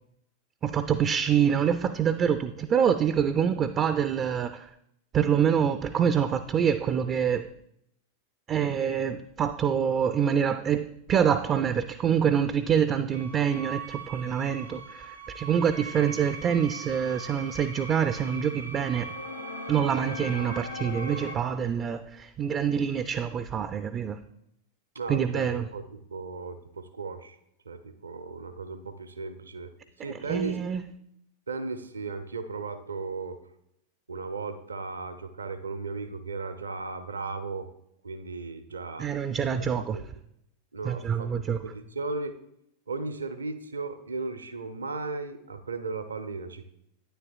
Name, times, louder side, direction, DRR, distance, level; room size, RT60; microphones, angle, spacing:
voice 1, 0.6-4.7 5.1-7.5 8.5-19.1 19.7-24.2 25.1-25.7 30.3-30.8 39.0-40.0 40.8-41.7, right 8 dB, 30° right, 10 dB, 0.3 m, -26 dB
sound 1, 13.1-21.4, right 1 dB, 85° left, 0.9 m, -39 dB
voice 2, 24.9-27.4 27.7-29.7 30.0-30.6 31.5-33.4 34.1-37.7 38.0-39.1 39.6-40.0 40.7-42.3 42.9-46.7, right 4 dB, 75° right, 10 dB, 0.6 m, -36 dB
10.0 x 9.3 x 2.3 m, 0.77 s
figure-of-eight pair, 90°, 0 cm